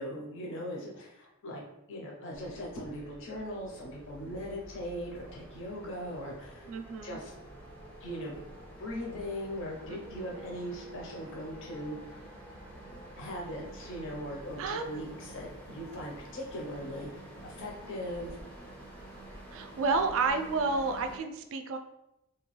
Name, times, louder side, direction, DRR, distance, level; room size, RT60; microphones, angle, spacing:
voice 1, 0.0-1.6 1.9-6.7 7.0-7.3 8.0-8.4 8.8-12.3 13.2-18.4, equal, 55° left, -1 dB, 0.6 m, -40 dB
sound 1, 2.3-21.2, right 1 dB, 5° left, 0.5 m, -48 dB
voice 2, 6.7-7.2 9.8-10.3 14.6-15.0 19.5-21.8, right 4 dB, 60° right, 7 dB, 0.3 m, -31 dB
2.8 x 2.2 x 3.0 m, 0.88 s
head